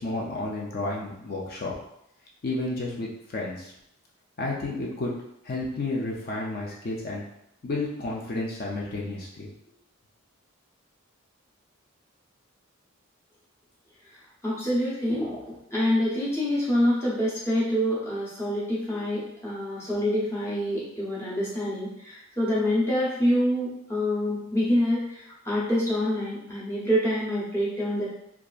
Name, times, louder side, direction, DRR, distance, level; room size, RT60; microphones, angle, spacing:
voice 1, 0.0-1.7 2.4-3.7 4.4-5.1 5.4-7.2 7.6-9.5, left 2 dB, 45° left, -3 dB, 0.4 m, -31 dB
voice 2, 14.4-28.1, equal, 10° left, -8 dB, 0.7 m, -26 dB
2.7 x 2.3 x 2.3 m, 0.78 s
head